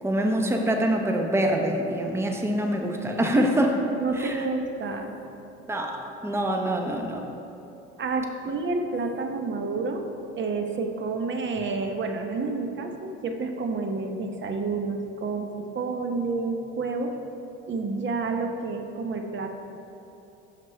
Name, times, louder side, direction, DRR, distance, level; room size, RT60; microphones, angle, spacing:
voice 1, 0.0-3.8 4.1-4.5 5.7-7.2, right 1 dB, 10° right, 3 dB, 0.8 m, -25 dB
voice 2, 4.0-5.1 8.0-10.0 10.4-17.1 17.7-19.5, right 3 dB, 35° right, 4 dB, 0.9 m, -29 dB
6.0 x 5.8 x 4.6 m, 3.0 s
hypercardioid pair, 65°, 32 cm